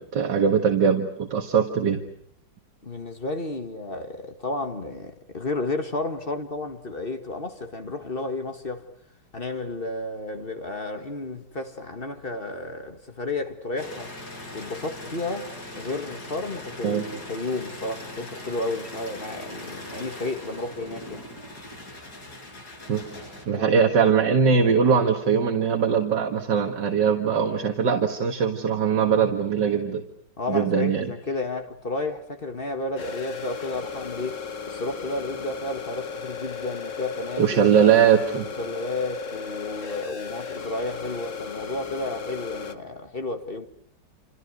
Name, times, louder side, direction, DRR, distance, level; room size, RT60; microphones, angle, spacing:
voice 1, 0.0-2.0 16.8-17.0 22.9-23.1 23.5-30.0 30.5-31.1 37.4-38.5, right 6 dB, 75° right, 2.3 m, -21 dB
voice 2, 2.8-8.9 9.3-14.1 14.5-21.3 23.5-23.8 30.4-37.7 38.6-43.7, left 2 dB, 30° left, 2.1 m, -32 dB
sound 1, 13.8-23.5, left 1 dB, 60° left, 6.3 m, -40 dB
sound 2, 33.0-42.7, left 5 dB, 45° left, 1.6 m, -35 dB
28.5 x 28.0 x 6.6 m
omnidirectional pair, 1.9 m